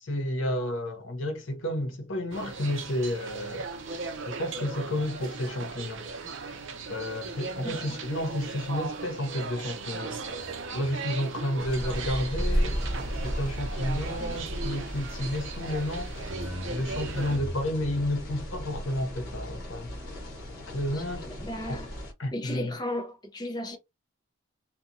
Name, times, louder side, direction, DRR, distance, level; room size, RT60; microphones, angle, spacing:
voice 1, 0.1-3.7 4.3-6.1 6.9-10.2 10.7-12.8 13.2-20.0 20.7-21.3 21.7-21.8 22.2-22.7, left 1 dB, 80° left, 0.8 m, -31 dB
sound 1, 2.3-17.4, right 4 dB, 75° right, 0.6 m, -38 dB
voice 2, 7.6-8.0 14.2-14.4 20.9-21.9 22.3-23.8, left 1 dB, 20° left, 0.5 m, -36 dB
sound 2, 10.1-21.6, left 1 dB, 25° right, 0.6 m, -47 dB
sound 3, 11.6-22.1, equal, 50° left, 1.1 m, -34 dB
2.8 x 2.2 x 2.5 m
head